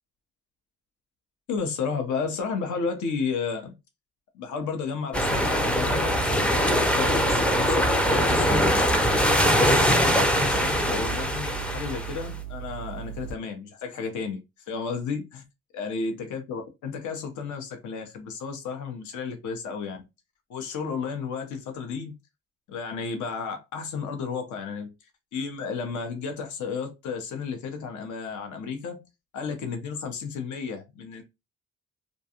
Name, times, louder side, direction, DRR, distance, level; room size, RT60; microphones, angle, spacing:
voice 1, 1.5-3.8 4.3-8.7 9.3-14.4 14.7-15.4 15.7-20.0 20.5-22.1 22.7-24.9 25.3-29.1 29.3-31.2, left 5 dB, 75° left, 0.7 m, -32 dB
sound 1, 5.1-13.3, equal, 5° left, 0.4 m, -23 dB
2.5 x 2.2 x 2.7 m
cardioid pair, 90°, 30 cm